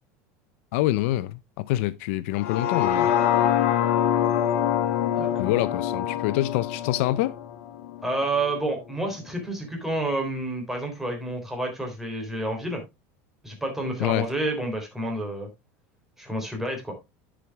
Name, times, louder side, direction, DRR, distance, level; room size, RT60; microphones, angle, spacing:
voice 1, 0.7-1.4 1.7-3.1 5.4-7.4 14.0-14.3, left 16 dB, 70° left, 0.6 m, -25 dB
sound 1, 2.4-8.5 8.9-9.0, left 10 dB, 85° left, 1.3 m, -25 dB
voice 2, 5.1-5.6 8.0-12.8 13.4-15.5 16.2-17.0, right 2 dB, 5° right, 3.5 m, -29 dB
10.0 x 6.2 x 3.5 m
supercardioid pair, 145°, 7 cm